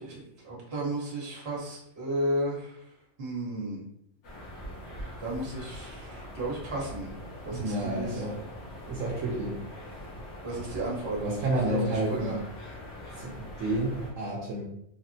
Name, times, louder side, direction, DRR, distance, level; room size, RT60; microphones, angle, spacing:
voice 1, 0.0-2.7 3.2-3.8 5.2-7.1 7.4-8.3 10.4-11.2 11.7-12.4, right 1 dB, 50° right, -4 dB, 1.2 m, -33 dB
sound 1, 4.2-14.1, left 1 dB, 60° left, 1.1 m, -43 dB
voice 2, 7.5-8.4 8.9-9.6 11.2-12.4 13.2-14.6, right 1 dB, 75° right, -4 dB, 1.0 m, -30 dB
3.5 x 2.0 x 2.6 m, 0.74 s
omnidirectional pair, 1.4 m